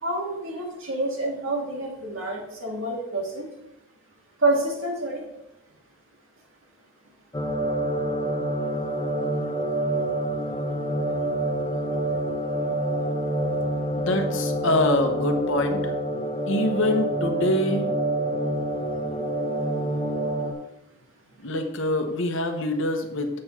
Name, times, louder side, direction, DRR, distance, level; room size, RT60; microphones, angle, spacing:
voice 1, 0.0-3.5 4.4-5.2, right 2 dB, 65° right, -1 dB, 2.0 m, -27 dB
sound 1, 7.3-20.5, right 1 dB, 15° left, 0.6 m, -27 dB
voice 2, 14.0-15.9 16.5-17.9 21.4-23.4, left 1 dB, 60° left, 5 dB, 1.0 m, -25 dB
7.4 x 4.6 x 5.6 m, 0.87 s
head